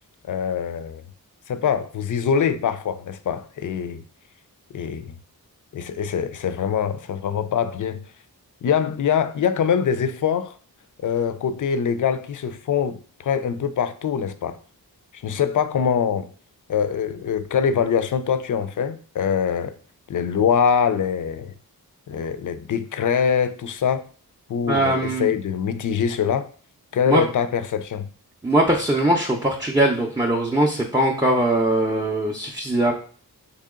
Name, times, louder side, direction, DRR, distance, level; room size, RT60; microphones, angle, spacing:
voice 1, 0.3-1.0 1.5-4.0 4.7-5.1 5.7-8.0 8.6-10.5 11.0-14.6 15.1-16.3 16.7-19.7 20.1-21.5 22.1-24.1 24.5-26.5 26.9-28.1, left 7 dB, 55° left, 0.4 m, -23 dB
voice 2, 24.7-25.3 27.1-27.2 28.4-32.9, right 1 dB, 10° right, 0.5 m, -21 dB
3.0 x 2.8 x 3.6 m
cardioid pair, 50°, 38 cm